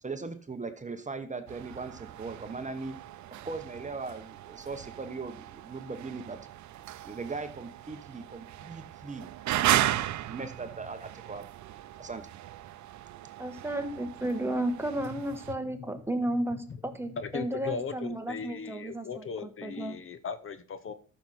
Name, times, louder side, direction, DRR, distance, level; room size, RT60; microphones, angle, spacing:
voice 1, 0.0-3.0 3.3-6.5 7.0-9.3 10.2-11.5 12.0-12.3, right 4 dB, 25° right, 9 dB, 1.0 m, -39 dB
sound 1, 1.5-15.5, right 13 dB, 70° right, 0.6 m, -36 dB
voice 2, 13.4-19.2 19.6-20.0, right 1 dB, 10° right, 6 dB, 1.4 m, -33 dB
voice 3, 17.2-20.9, left 5 dB, 45° left, 12 dB, 0.9 m, -38 dB
12.5 x 6.4 x 4.2 m, 0.41 s
cardioid pair, 90°, 30 cm